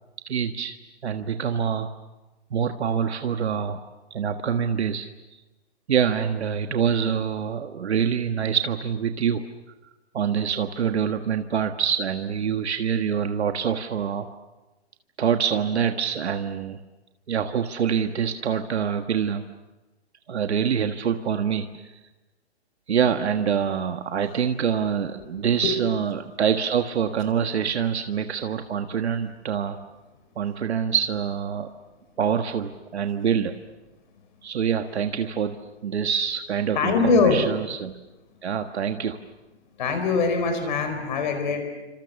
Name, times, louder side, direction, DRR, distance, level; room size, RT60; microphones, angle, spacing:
voice 1, 0.2-0.8 1.0-1.9 2.5-3.9 4.1-5.1 5.9-9.4 10.1-14.3 15.2-16.8 17.3-19.4 20.3-21.9 22.9-29.8 30.4-31.7 32.2-33.6 34.4-35.6 35.8-37.9 38.4-39.2, right 7 dB, 70° right, 7 dB, 1.6 m, -25 dB
voice 2, 36.7-37.4 39.8-41.6, left 4 dB, 45° left, 6 dB, 4.8 m, -22 dB
28.5 x 26.5 x 7.1 m, 1.1 s
hypercardioid pair, 165°, 34 cm